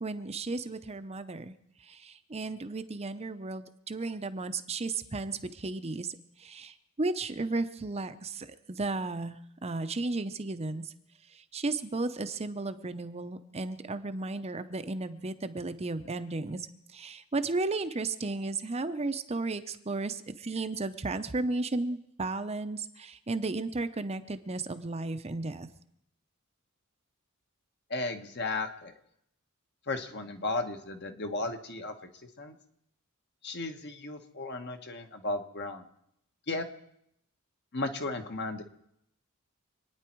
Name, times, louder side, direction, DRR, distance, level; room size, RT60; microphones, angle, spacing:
voice 1, 0.0-1.5 1.8-10.9 11.3-16.7 16.9-25.7, right 3 dB, 30° right, 9 dB, 0.7 m, -34 dB
voice 2, 27.9-28.9 29.9-31.9 32.4-32.5 33.4-35.8 36.5-36.6 37.7-38.6, left 2 dB, 50° left, 6 dB, 1.4 m, -34 dB
26.5 x 9.7 x 4.6 m, 0.76 s
head